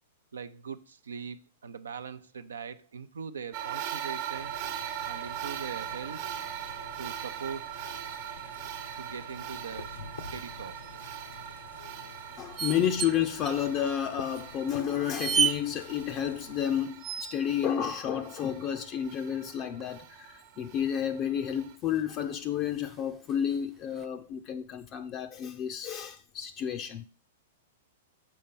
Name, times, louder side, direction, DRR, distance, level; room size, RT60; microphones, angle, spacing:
voice 1, 0.3-4.5 5.1-6.3 7.0-7.7 8.9-10.9, right 6 dB, 80° right, 0.5 m, -41 dB
sound 1, 3.5-21.7, right 10 dB, 50° right, 1.0 m, -41 dB
sound 2, 4.3-16.7, left 4 dB, 80° left, 0.8 m, -49 dB
sound 3, 10.8-11.2 12.6-13.1 13.4-13.5 14.4-14.5 15.0-15.6 17.0-17.5 19.5-20.0 21.6-21.7 21.9-22.0 22.7-23.6 23.9-24.1, right 7 dB, 25° right, 0.6 m, -31 dB
voice 2, 12.4-27.0, left 9 dB, 35° left, 0.5 m, -31 dB
6.4 x 4.3 x 5.4 m
hypercardioid pair, 110°, 0 cm